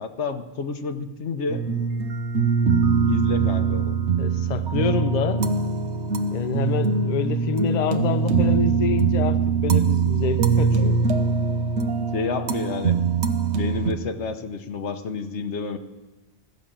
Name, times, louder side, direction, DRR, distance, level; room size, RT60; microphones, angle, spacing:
voice 1, 0.0-1.6 3.0-4.0 12.1-13.0 13.5-15.8, left 5 dB, 90° left, 7 dB, 1.2 m, -30 dB
sound 1, 1.5-13.9, right 5 dB, 85° right, 1.1 m, -22 dB
voice 2, 4.2-5.4 6.3-11.0, left 6 dB, 45° left, 10 dB, 0.7 m, -27 dB
15.0 x 7.2 x 8.7 m, 1.2 s
omnidirectional pair, 1.1 m